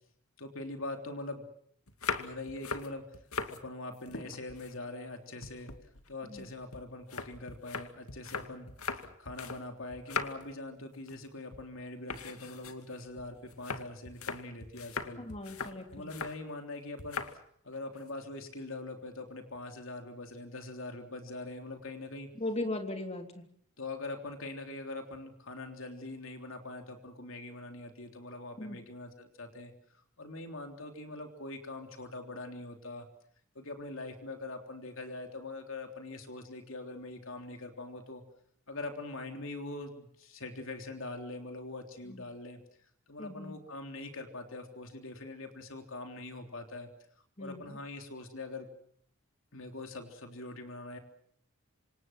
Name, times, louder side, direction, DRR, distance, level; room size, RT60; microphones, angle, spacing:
voice 1, 0.4-1.5 2.2-3.1 3.5-8.7 9.0-15.2 15.9-17.2 17.6-22.3 23.8-29.7 30.2-33.1 33.6-38.2 38.7-42.6 43.1-46.9 47.4-48.7 49.5-51.0, left 2 dB, 60° left, 5 dB, 3.5 m, -43 dB
sound 1, 1.9-3.6 3.9-5.1 5.4-9.6 9.9-10.6 10.9-11.3 11.5-11.7 12.1-16.4 17.0-17.4 17.7-18.1, left 5 dB, 80° left, 2.3 m, -40 dB
voice 2, 15.2-16.1 22.4-23.4 28.6-28.8 42.1-42.2 43.2-43.6 47.4-47.8, left 2 dB, 30° left, 5 dB, 3.3 m, -38 dB
27.0 x 26.5 x 6.1 m, 0.67 s
head